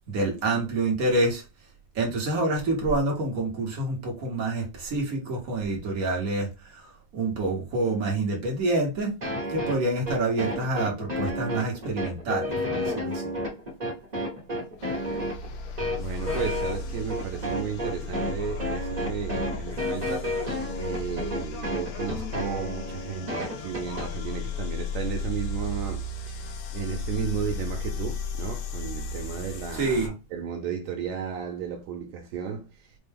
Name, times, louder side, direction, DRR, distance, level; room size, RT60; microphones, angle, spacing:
voice 1, 0.1-1.4 1.9-9.1 9.5-13.3 29.7-30.1, right 2 dB, 60° right, 0.8 m, -27 dB
sound 1, 9.2-24.1, left 1 dB, 45° right, 0.5 m, -31 dB
sound 2, 14.8-30.1, left 3 dB, 75° left, 1.6 m, -35 dB
voice 2, 14.8-15.4 16.0-32.9, right 7 dB, 80° right, 1.8 m, -34 dB
Singing, 16.1-17.2 17.5-21.1 21.4-24.7, left 2 dB, 40° left, 0.9 m, -46 dB
5.9 x 2.2 x 3.4 m
omnidirectional pair, 3.3 m